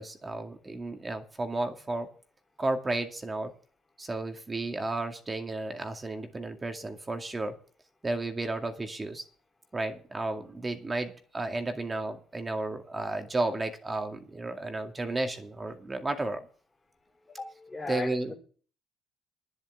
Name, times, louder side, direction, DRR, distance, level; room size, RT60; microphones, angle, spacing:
voice 1, 0.0-2.1 2.6-3.5 4.0-7.6 8.0-9.2 9.7-16.5 17.9-18.3, right 2 dB, 25° right, 2.2 m, -33 dB
voice 2, 17.4-18.4, left 3 dB, 20° left, 3.3 m, -37 dB
10.5 x 8.0 x 8.8 m
cardioid pair, 80°, 0 cm